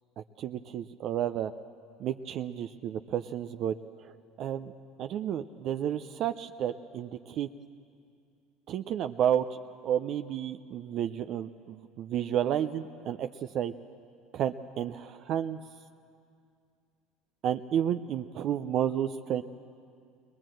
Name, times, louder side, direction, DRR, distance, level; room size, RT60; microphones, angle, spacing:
voice 1, 0.2-1.5 2.0-4.7 5.0-7.5 8.7-9.6 9.8-13.3 13.5-13.7 14.3-15.6 17.4-19.4, right 10 dB, 55° right, 9 dB, 0.5 m, -31 dB
21.0 x 20.0 x 7.7 m, 2.4 s
hypercardioid pair, 80°, 0 cm